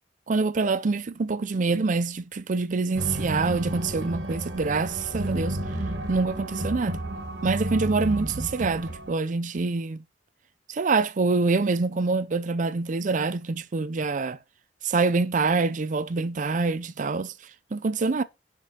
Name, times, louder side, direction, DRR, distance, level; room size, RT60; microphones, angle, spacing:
voice 1, 0.3-5.6 6.1-7.0 7.4-10.0 10.7-14.4 14.8-17.3 17.7-18.2, right 3 dB, 45° right, 0.5 m, -25 dB
sound 1, 2.9-9.1, right 1 dB, 65° right, 1.8 m, -32 dB
5.4 x 5.2 x 5.2 m
head